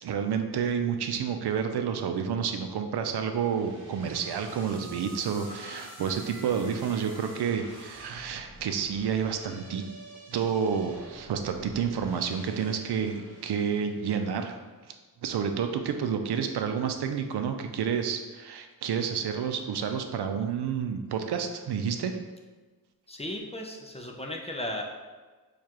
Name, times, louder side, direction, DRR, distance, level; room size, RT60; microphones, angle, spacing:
voice 1, 0.0-9.8 10.3-14.6 15.2-22.2, right 7 dB, 85° right, 6 dB, 0.5 m, -30 dB
sound 1, 3.1-14.4, right 1 dB, 30° right, 1.2 m, -48 dB
voice 2, 23.1-24.8, left 1 dB, 15° left, 1 dB, 0.4 m, -35 dB
6.5 x 2.4 x 2.9 m, 1.3 s
wide cardioid pair, 120°, 38 cm